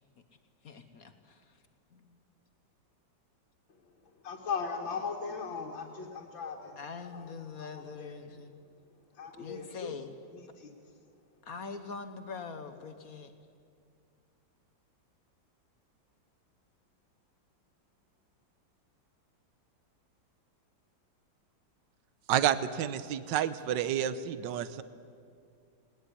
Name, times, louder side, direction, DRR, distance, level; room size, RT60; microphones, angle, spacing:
voice 1, 0.6-1.6 1.9-2.2 6.8-8.5 9.4-10.2 11.4-13.3, left 5 dB, 55° left, 8 dB, 1.4 m, -43 dB
voice 2, 4.2-6.8 7.1-7.3 7.6-7.7 8.0-8.1 9.2-10.0 10.6-10.7, left 5 dB, 80° left, -1 dB, 2.6 m, -37 dB
voice 3, 22.3-24.8, right 10 dB, 75° right, 14 dB, 1.5 m, -29 dB
20.0 x 19.5 x 9.9 m, 2.3 s
omnidirectional pair, 2.1 m